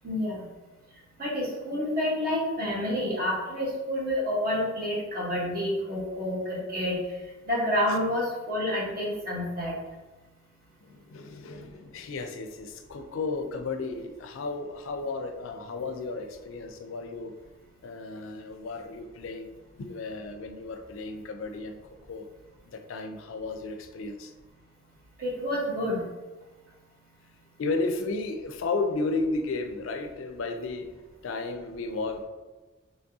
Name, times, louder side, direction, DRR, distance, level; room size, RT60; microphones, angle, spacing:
voice 1, 0.0-0.4 1.2-7.0 7.5-9.7 25.2-26.0, left 1 dB, 45° right, -6 dB, 1.2 m, -29 dB
voice 2, 10.8-17.3 17.8-21.8 22.1-22.3 22.7-24.3 27.6-30.9 31.2-32.2, left 3 dB, 70° left, 6 dB, 0.4 m, -33 dB
3.4 x 3.2 x 2.7 m, 1.2 s
head